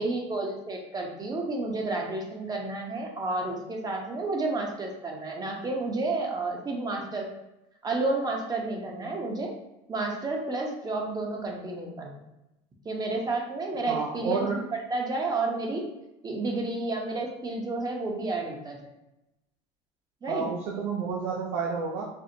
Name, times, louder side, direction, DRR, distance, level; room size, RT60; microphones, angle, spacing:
voice 1, 0.0-7.3 7.8-9.5 9.9-12.2 12.8-14.6 14.9-15.9 16.2-18.9 20.2-20.5, right 2 dB, 25° right, 1 dB, 0.7 m, -31 dB
voice 2, 13.9-14.6 20.3-22.1, right 5 dB, 85° right, -1 dB, 0.5 m, -30 dB
4.3 x 2.0 x 2.5 m, 0.91 s
supercardioid pair, 115°, 17 cm